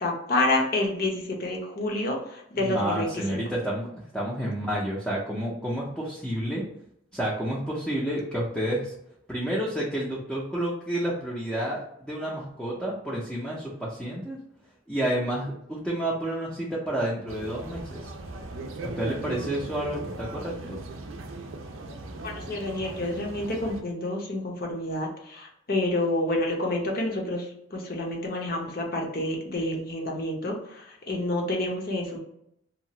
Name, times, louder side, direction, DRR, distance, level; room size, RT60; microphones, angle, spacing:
voice 1, 0.0-3.4 22.2-32.2, left 1 dB, 50° left, 0 dB, 0.7 m, -29 dB
voice 2, 2.6-3.9 4.1-6.6 7.1-8.9 9.3-14.4 14.9-18.1 18.8-20.8, right 1 dB, 5° left, -6 dB, 0.5 m, -30 dB
sound 1, 17.3-23.8, right 2 dB, 80° right, 0.4 m, -38 dB
2.7 x 2.4 x 2.8 m, 0.75 s
head